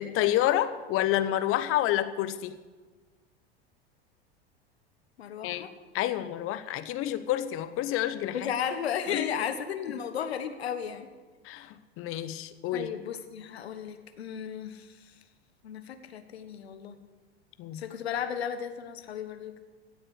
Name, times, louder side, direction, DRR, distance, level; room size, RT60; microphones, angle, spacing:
voice 1, 0.0-2.6 5.4-5.7 5.9-8.5 9.1-9.3 11.4-12.9 17.6-17.8, left 13 dB, 45° left, 12 dB, 1.0 m, -29 dB
voice 2, 5.2-5.7 8.3-11.1 12.7-15.1 15.6-17.0 17.7-19.6, left 8 dB, 75° left, 9 dB, 1.4 m, -34 dB
16.0 x 7.9 x 8.2 m, 1.3 s
hypercardioid pair, 85°, 31 cm